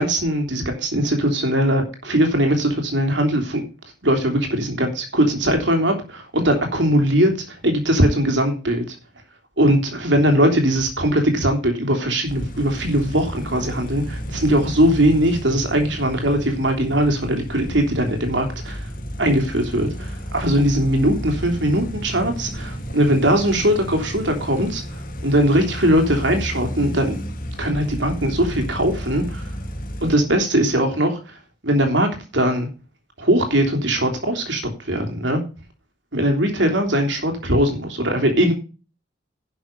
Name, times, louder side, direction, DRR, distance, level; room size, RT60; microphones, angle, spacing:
voice 1, 0.0-3.6 4.0-8.8 9.6-18.9 19.2-27.2 27.6-29.5 30.0-31.4 31.6-32.7 33.2-35.4 36.1-38.5, right 1 dB, 65° right, 5 dB, 3.4 m, -20 dB
sound 1, 12.3-30.2, equal, 45° left, 2.1 m, -32 dB
11.0 x 7.0 x 5.3 m, 0.33 s
head